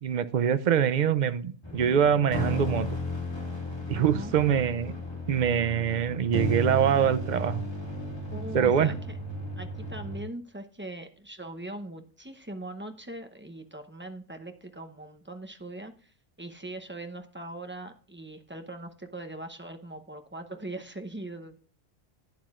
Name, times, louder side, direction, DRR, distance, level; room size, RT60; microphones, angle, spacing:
voice 1, 0.0-2.9 3.9-4.9 5.3-7.6 8.5-8.9, right 8 dB, 50° right, 13 dB, 0.6 m, -24 dB
sound 1, 1.6-10.2, left 1 dB, 20° left, 2.1 m, -34 dB
voice 2, 3.9-4.3 8.3-9.1 9.6-21.6, right 1 dB, 10° right, 6 dB, 0.7 m, -41 dB
12.0 x 9.3 x 2.5 m, 0.41 s
omnidirectional pair, 1.2 m